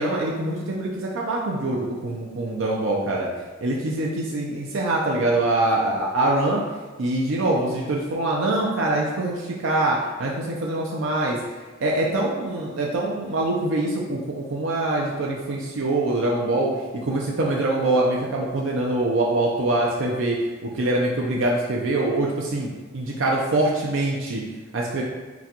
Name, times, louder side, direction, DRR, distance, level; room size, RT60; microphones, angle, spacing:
voice 1, 0.0-3.3 3.6-6.6 7.0-11.4 11.8-22.7 22.9-24.4 24.7-25.0, right 2 dB, 80° right, -2 dB, 0.5 m, -24 dB
6.0 x 2.2 x 2.9 m, 1.3 s
head